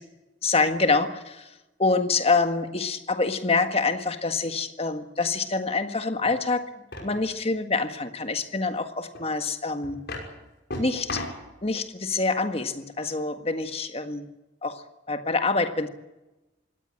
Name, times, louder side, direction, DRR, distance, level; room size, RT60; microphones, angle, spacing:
voice 1, 0.4-1.5 1.8-6.7 7.0-10.0 10.8-11.2 11.6-14.3 14.6-15.9, left 3 dB, 30° left, 8 dB, 1.6 m, -26 dB
sound 1, 6.2-6.3 6.9-7.3 9.1-9.2 9.8-10.3 10.7-11.5, left 2 dB, 55° left, 5.7 m, -35 dB
23.5 x 18.0 x 8.5 m, 1.0 s
head